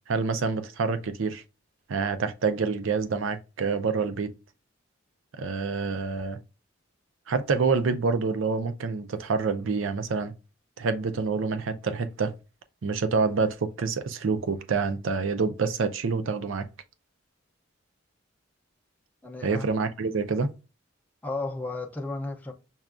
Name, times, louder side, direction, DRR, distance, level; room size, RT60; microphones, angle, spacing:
voice 1, 0.1-1.4 1.9-4.3 5.3-6.4 7.3-10.3 10.8-12.3 12.8-16.7 19.4-20.5, right 4 dB, 75° right, 0.5 m, -27 dB
voice 2, 19.2-19.6 21.2-22.5, left 2 dB, 10° left, 0.4 m, -33 dB
5.5 x 2.3 x 2.4 m
head